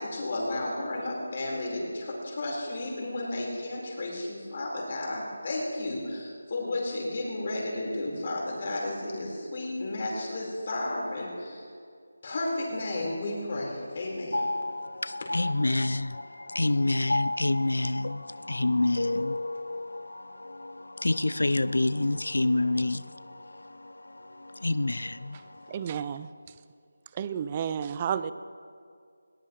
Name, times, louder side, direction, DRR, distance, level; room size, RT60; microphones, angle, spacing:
voice 1, 0.0-11.6 12.2-14.4, left 2 dB, 35° left, 4.7 m, -33 dB
voice 2, 14.3-23.9 24.4-25.4, left 2 dB, 85° left, 0.5 m, -28 dB
voice 3, 25.7-26.3 27.1-28.3, right 8 dB, 20° right, 0.3 m, -31 dB
20.5 x 19.5 x 3.3 m
figure-of-eight pair, 175°, 0 cm